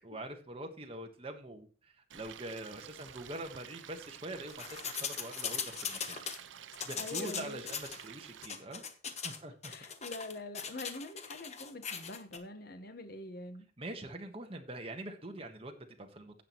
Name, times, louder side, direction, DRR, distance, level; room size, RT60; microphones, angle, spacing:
voice 1, 0.0-6.2 6.5-8.8 9.2-9.7 13.8-16.4, right 1 dB, 30° right, 1.4 m, -44 dB
Stream, 2.1-8.5, right 9 dB, 75° right, 0.6 m, -50 dB
sound 1, 4.5-6.4 6.7-8.0 8.4-9.4 9.6-12.4, left 7 dB, 35° left, 1.2 m, -39 dB
voice 2, 7.0-7.7 9.7-13.6, left 2 dB, 50° left, 1.4 m, -44 dB
16.5 x 5.9 x 3.1 m
head